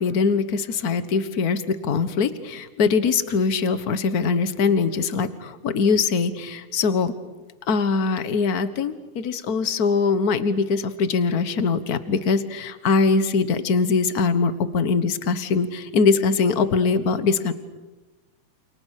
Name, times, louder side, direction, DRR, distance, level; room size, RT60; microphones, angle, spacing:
voice 1, 0.0-7.1 7.7-17.5, left 4 dB, 50° left, 12 dB, 1.1 m, -22 dB
29.0 x 29.0 x 6.6 m, 1.2 s
omnidirectional pair, 3.5 m